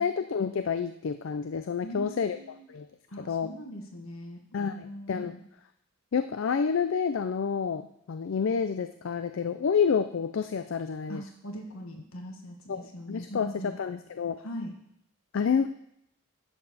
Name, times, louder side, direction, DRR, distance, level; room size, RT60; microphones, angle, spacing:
voice 1, 0.0-2.4 2.7-2.9 3.2-3.5 4.5-5.3 6.1-11.2 12.7-14.4 15.3-15.7, left 6 dB, 65° left, 10 dB, 0.4 m, -29 dB
voice 2, 1.8-2.7 3.1-5.4 11.1-13.7 14.4-14.7, equal, 80° left, 3 dB, 1.4 m, -41 dB
11.0 x 7.6 x 4.1 m, 0.74 s
head